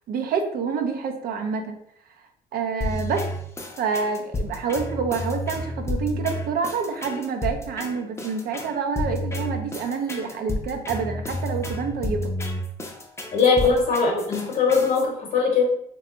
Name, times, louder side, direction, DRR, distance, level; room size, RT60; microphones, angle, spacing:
voice 1, 0.1-1.8 2.5-3.3 3.8-12.3 13.6-13.7, right 5 dB, 60° right, 5 dB, 0.5 m, -27 dB
sound 1, 2.8-15.0, left 1 dB, 15° left, 0.5 m, -31 dB
voice 2, 13.3-15.6, left 5 dB, 50° left, -1 dB, 0.8 m, -20 dB
3.2 x 2.2 x 2.9 m, 0.71 s
cardioid pair, 110°, 17 cm